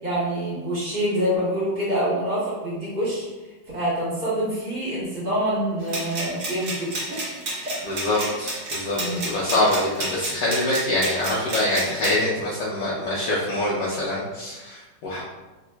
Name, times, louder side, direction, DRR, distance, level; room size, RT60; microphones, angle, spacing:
voice 1, 0.0-3.3 3.7-7.3 7.6-7.8 8.1-8.3 8.9-9.3, equal, 45° right, -9 dB, 1.7 m, -26 dB
sound 1, 5.9-12.2, right 1 dB, 60° right, 1.4 m, -31 dB
voice 2, 7.9-15.2, left 1 dB, 70° left, -8 dB, 1.2 m, -25 dB
3.4 x 2.9 x 2.2 m, 1.1 s
omnidirectional pair, 2.0 m